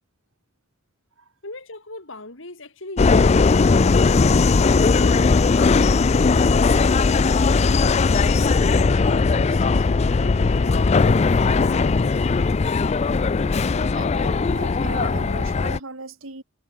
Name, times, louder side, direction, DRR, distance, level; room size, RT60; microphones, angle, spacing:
voice 1, 1.4-4.4 4.9-6.6 8.6-12.3, left 2 dB, 65° left, 3.6 m, -39 dB
Subway metro underground, 3.0-15.8, left 4 dB, 30° left, 0.4 m, -18 dB
voice 2, 13.4-16.4, right 3 dB, 75° right, 2.9 m, -37 dB
head